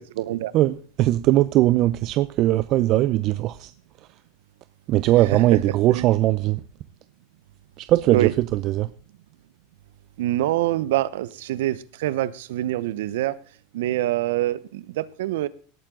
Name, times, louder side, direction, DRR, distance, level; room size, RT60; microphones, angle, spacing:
voice 1, 0.0-0.5 5.2-5.4 5.9-6.0 8.1-8.3 10.2-13.4 13.7-15.5, right 14 dB, 80° right, 0.9 m, -25 dB
voice 2, 0.5-3.7 4.9-6.6 7.8-8.9, right 15 dB, 45° right, 0.6 m, -20 dB
18.0 x 9.0 x 3.8 m
supercardioid pair, 130°, 0 cm